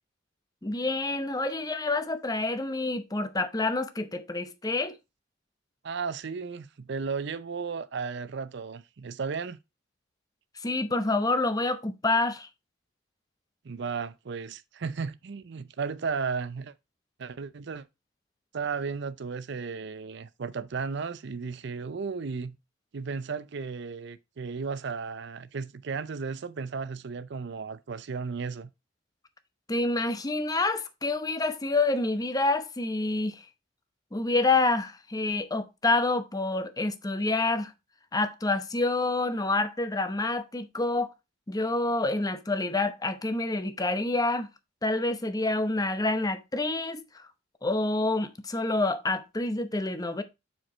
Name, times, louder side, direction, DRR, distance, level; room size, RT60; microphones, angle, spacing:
voice 1, 0.6-5.0 10.6-12.5 29.7-33.4 34.1-37.7 38.1-41.1 41.5-44.5 44.8-47.3 47.6-50.2, left 2 dB, 20° left, 0.8 m, -27 dB
voice 2, 5.8-9.6 13.6-16.7 17.2-17.8 18.5-22.6 22.9-28.7, right 5 dB, 60° right, 0.5 m, -34 dB
6.5 x 4.7 x 4.2 m
head